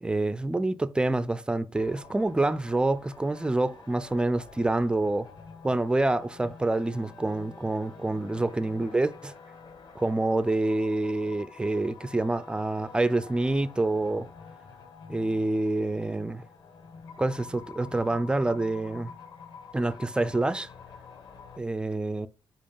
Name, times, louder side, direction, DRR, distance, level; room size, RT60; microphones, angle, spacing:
voice 1, 0.0-5.3 5.6-9.3 10.0-14.3 15.1-16.4 17.2-19.1 19.7-20.7 21.6-22.3, right 2 dB, 10° right, 0.3 m, -27 dB
sound 1, 1.7-21.6, left 5 dB, 45° left, 1.2 m, -48 dB
5.3 x 4.5 x 5.4 m
wide cardioid pair, 165°, 10 cm